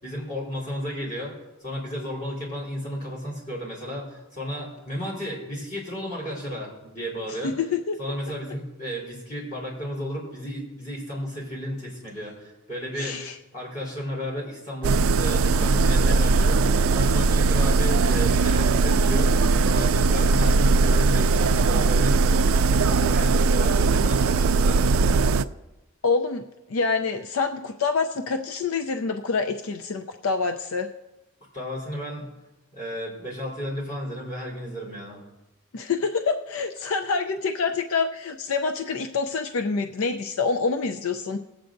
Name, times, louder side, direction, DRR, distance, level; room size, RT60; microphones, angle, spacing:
voice 1, 0.0-1.3 1.6-7.5 8.0-19.3 19.6-25.2 31.5-32.3 32.7-35.2, equal, 40° left, -4 dB, 4.1 m, -33 dB
voice 2, 7.4-8.0 13.0-13.3 26.0-26.4 26.7-30.9 35.7-41.4, left 4 dB, 85° left, 6 dB, 0.5 m, -26 dB
sound 1, 14.8-25.4, right 3 dB, 75° right, 0.4 m, -20 dB
21.0 x 8.1 x 2.6 m, 1.0 s
head